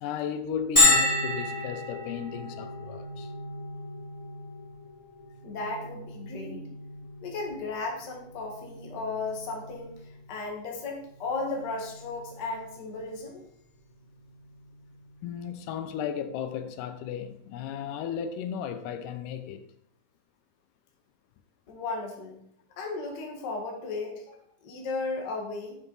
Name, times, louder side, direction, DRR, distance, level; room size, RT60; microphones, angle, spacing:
voice 1, 0.0-3.3 15.2-19.6, left 8 dB, 85° left, 2.2 m, -35 dB
Bell, 0.8-16.2, left 2 dB, 5° left, 2.2 m, -32 dB
voice 2, 5.4-6.7 7.2-13.5 21.7-22.4 22.8-25.8, left 3 dB, 45° left, 1.6 m, -35 dB
9.5 x 6.1 x 4.0 m
omnidirectional pair, 3.7 m